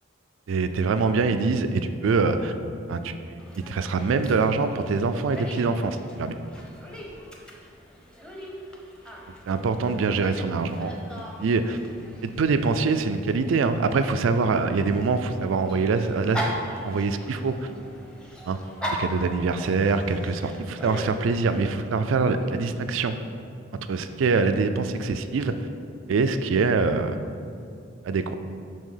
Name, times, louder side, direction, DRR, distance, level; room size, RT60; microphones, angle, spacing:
voice 1, 0.5-2.5 2.9-6.4 9.5-11.8 12.2-16.5 16.8-17.7 18.4-18.6 19.0-23.1 23.7-25.7 26.1-27.2 28.0-28.4, right 4 dB, 80° right, 9 dB, 0.4 m, -24 dB
Dog, 3.4-21.7, equal, 5° left, 0.8 m, -39 dB
6.2 x 4.4 x 5.6 m, 2.4 s
head